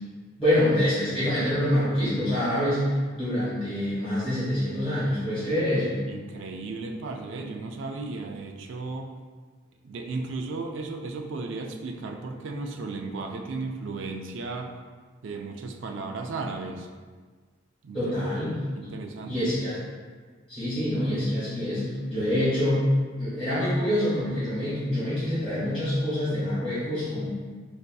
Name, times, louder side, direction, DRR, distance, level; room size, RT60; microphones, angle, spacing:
voice 1, 0.4-6.0 17.9-18.6 19.2-19.8 20.5-22.8 23.2-27.2, left 1 dB, 5° left, -14 dB, 1.4 m, -26 dB
voice 2, 6.1-9.1 9.8-14.7 15.2-16.9 17.8-18.0 18.7-19.5, right 3 dB, 65° right, 3 dB, 0.3 m, -35 dB
4.4 x 2.6 x 2.2 m, 1.5 s
head